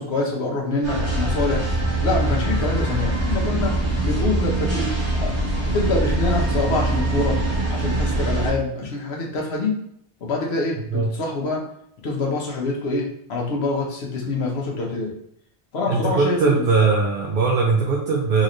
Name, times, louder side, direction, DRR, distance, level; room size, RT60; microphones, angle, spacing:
voice 1, 0.0-1.6 2.0-3.7 4.0-4.9 5.2-5.3 5.6-7.4 7.7-9.8 10.2-11.6 12.0-15.1 15.7-16.6, left 3 dB, 70° left, -1 dB, 1.1 m, -25 dB
sound 1, 0.8-8.5, right 2 dB, 80° right, 1.6 m, -23 dB
voice 2, 15.9-18.4, right 4 dB, 60° right, -2 dB, 0.7 m, -20 dB
4.0 x 3.1 x 2.6 m, 0.69 s
omnidirectional pair, 1.2 m